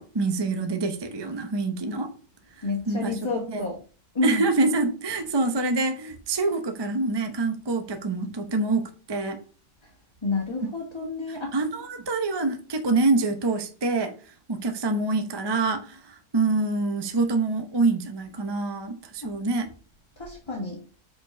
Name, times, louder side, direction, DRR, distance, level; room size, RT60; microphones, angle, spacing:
voice 1, 0.0-2.1 2.6-3.2 3.5-3.6 4.2-8.8 9.1-9.4 11.3-14.1 14.5-19.7, right 3 dB, 25° right, 7 dB, 0.6 m, -26 dB
voice 2, 2.6-3.8 4.1-4.4 10.2-11.5 19.2-19.3 20.2-20.8, left 2 dB, 20° left, -2 dB, 1.5 m, -29 dB
5.1 x 4.4 x 6.0 m, 0.38 s
omnidirectional pair, 1.6 m